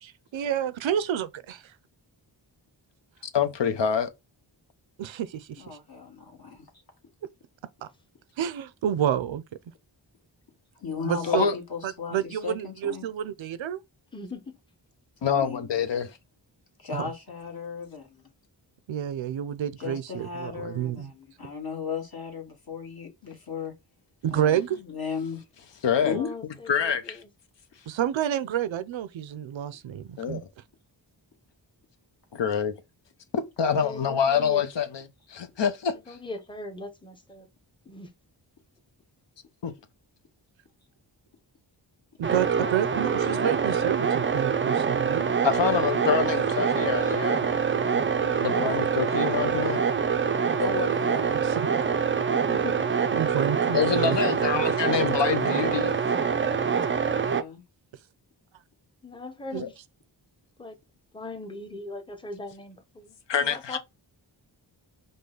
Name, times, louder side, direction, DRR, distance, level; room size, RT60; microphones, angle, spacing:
voice 1, 0.0-1.7 5.0-5.8 7.8-7.9 8.4-9.4 11.0-11.5 11.8-13.8 16.9-17.1 18.9-21.1 24.2-24.8 27.9-30.4 42.2-45.3 51.3-51.9 53.1-54.2 54.5-54.6 59.5-59.6, right 10 dB, 90° right, 0.6 m, -29 dB
voice 2, 3.3-4.1 11.2-11.5 15.2-16.2 25.8-26.2 26.7-27.2 30.2-30.4 32.3-32.7 33.3-35.0 35.3-36.2 39.6-39.7 45.4-48.0 48.4-49.8 53.7-55.9 59.6-59.7 63.3-63.8, left 7 dB, 70° left, 0.8 m, -26 dB
voice 3, 5.6-6.6 10.8-13.0 15.2-15.7 16.8-18.3 19.8-23.7 24.3-25.4 26.0-26.3 50.6-51.3 57.2-57.6, left 5 dB, 55° left, 1.6 m, -35 dB
voice 4, 14.1-14.5 26.0-27.2 33.7-34.6 36.1-37.5 37.9-38.1 52.3-52.9 59.0-59.7 60.6-60.8 61.1-63.8, left 2 dB, 10° left, 0.8 m, -40 dB
sound 1, 42.2-57.4, right 6 dB, 30° right, 0.4 m, -25 dB
5.3 x 2.2 x 3.8 m
wide cardioid pair, 115°, 45 cm